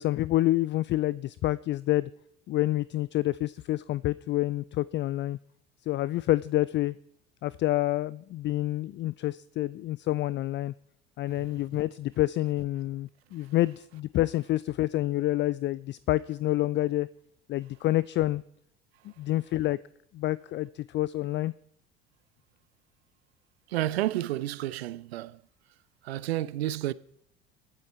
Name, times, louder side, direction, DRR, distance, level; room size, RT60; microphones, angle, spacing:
voice 1, 0.0-2.1 2.5-5.4 5.8-6.9 7.4-10.7 11.2-17.1 17.5-18.4 19.0-19.8 20.1-21.5, left 16 dB, 40° left, 0.4 m, -28 dB
voice 2, 23.7-25.4 26.0-26.9, right 14 dB, 80° right, 0.6 m, -30 dB
22.0 x 7.9 x 4.3 m
hypercardioid pair, 70°, 31 cm